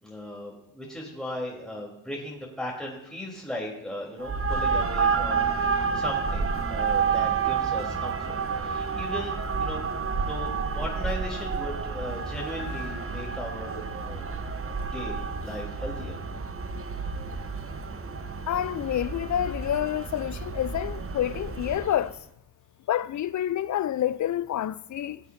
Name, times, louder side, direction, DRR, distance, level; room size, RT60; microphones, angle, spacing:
voice 1, 0.0-9.8 10.3-14.3 14.9-16.2, left 1 dB, ahead, 3.5 m, -37 dB
sound 1, 4.2-22.1, right 6 dB, 30° right, 0.9 m, -30 dB
sound 2, 4.3-21.9, right 2 dB, 65° right, 3.8 m, -38 dB
Piano, 12.6-14.5, left 3 dB, 65° left, 4.0 m, -47 dB
voice 2, 18.5-22.2 22.9-25.2, left 11 dB, 40° left, 0.4 m, -28 dB
19.0 x 8.0 x 2.7 m
hypercardioid pair, 50°, 48 cm